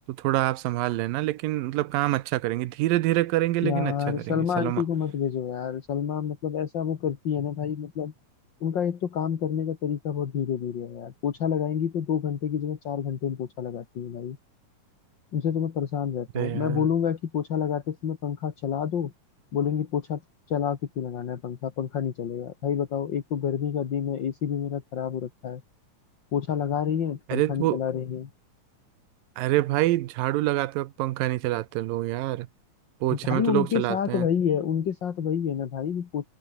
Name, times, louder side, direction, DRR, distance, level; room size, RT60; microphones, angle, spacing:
voice 1, 0.1-4.8 16.4-16.9 27.3-27.8 29.4-32.5 33.0-34.3, right 16 dB, 90° right, 2.6 m, -26 dB
voice 2, 3.6-8.1 8.6-14.4 15.3-19.1 19.5-20.2 20.5-25.6 26.3-28.3 33.1-36.3, left 8 dB, 45° left, 1.6 m, -28 dB
omnidirectional pair, 3.9 m